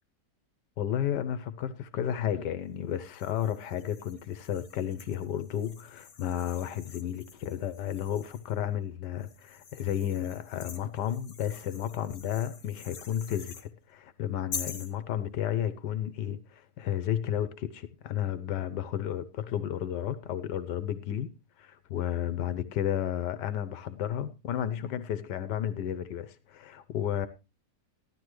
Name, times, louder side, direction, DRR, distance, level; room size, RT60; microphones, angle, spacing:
voice 1, 0.8-21.3 21.6-27.3, left 10 dB, 80° left, 1.4 m, -32 dB
sound 1, 3.0-8.6 9.2-13.7 14.5-14.9, left 6 dB, 55° left, 1.8 m, -46 dB
14.5 x 12.0 x 3.1 m
omnidirectional pair, 1.8 m